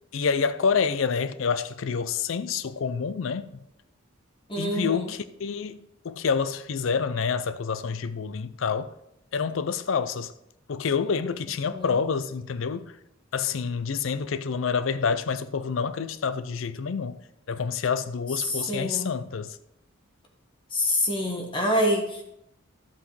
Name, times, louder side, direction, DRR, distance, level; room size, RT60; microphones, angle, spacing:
voice 1, 0.1-3.5 4.6-8.9 9.3-10.3 10.7-13.0 13.3-17.2 17.5-19.6, left 6 dB, 70° left, 0.5 m, -28 dB
voice 2, 4.5-5.1 11.7-11.9 18.4-19.1 20.7-22.2, left 1 dB, 25° left, 1.3 m, -26 dB
12.0 x 8.4 x 3.2 m
head